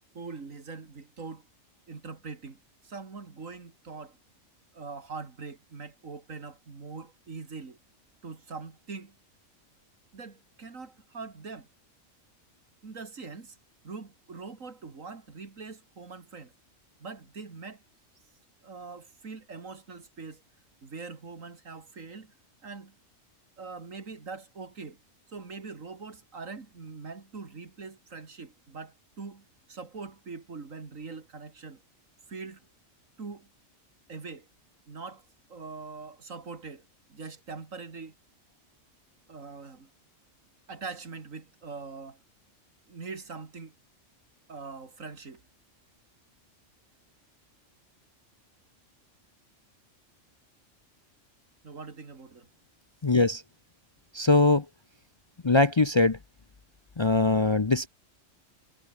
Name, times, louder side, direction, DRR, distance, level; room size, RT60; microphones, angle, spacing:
voice 1, 0.1-1.4 1.9-4.2 4.7-7.8 8.2-9.1 10.1-11.7 12.8-13.6 13.8-16.5 17.0-17.8 18.6-20.4 20.8-22.3 22.6-23.0 23.6-25.0 25.3-31.8 32.3-32.7 33.2-33.5 34.1-34.5 34.9-38.2 39.3-39.9 40.7-42.2 42.9-43.7 44.5-45.4 51.6-52.5, right 4 dB, 90° right, 2.9 m, -42 dB
voice 2, 53.0-53.4 54.1-54.6 55.4-56.2 57.0-57.9, left 3 dB, 30° left, 0.6 m, -22 dB
omnidirectional pair, 1.3 m